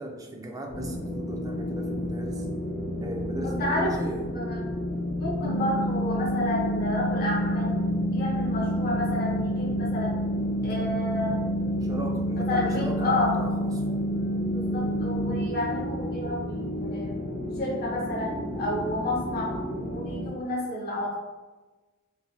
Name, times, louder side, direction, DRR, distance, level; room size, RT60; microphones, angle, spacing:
voice 1, 0.0-2.5 3.0-4.2 11.8-14.1, right 1 dB, 15° right, 2 dB, 0.3 m, -37 dB
sound 1, 0.7-20.3, left 1 dB, 80° left, 1.4 m, -32 dB
voice 2, 3.4-3.9 4.3-4.6 5.2-7.7 8.1-10.2 10.6-11.4 12.3-13.3 14.5-17.1 17.6-21.1, left 1 dB, 45° left, -5 dB, 0.6 m, -30 dB
sound 2, 5.4-15.4, equal, 80° right, 0.5 m, -29 dB
3.3 x 2.6 x 2.2 m, 1.2 s
head